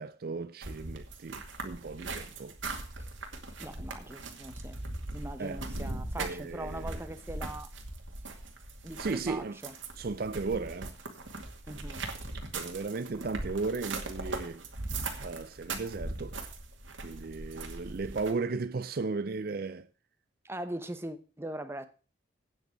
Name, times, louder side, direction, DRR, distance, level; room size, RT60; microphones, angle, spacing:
voice 1, 0.0-2.6 5.4-5.6 6.2-7.0 9.0-9.6 10.0-10.9 12.5-14.6 15.2-16.4 17.0-19.9, right 4 dB, 50° right, 0.4 m, -35 dB
sound 1, 0.6-18.3, right 2 dB, 85° right, 2.4 m, -40 dB
voice 2, 3.6-4.8 5.1-7.7 8.8-9.7 11.7-12.0 20.4-21.9, right 1 dB, 15° right, 0.9 m, -41 dB
9.1 x 8.1 x 7.1 m
head